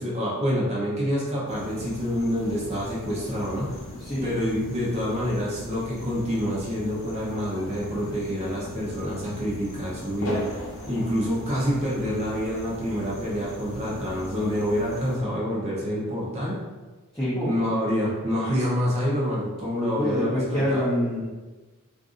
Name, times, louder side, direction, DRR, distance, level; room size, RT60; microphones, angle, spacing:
voice 1, 0.0-3.8 4.2-10.4 10.9-16.6 17.4-20.8, equal, 30° right, -6 dB, 0.7 m, -27 dB
sound 1, 1.5-15.2, left 1 dB, 65° left, 0.8 m, -39 dB
voice 2, 4.0-4.3 17.1-17.5 19.7-21.2, equal, 10° left, -12 dB, 0.8 m, -26 dB
2.6 x 2.5 x 3.7 m, 1.2 s
head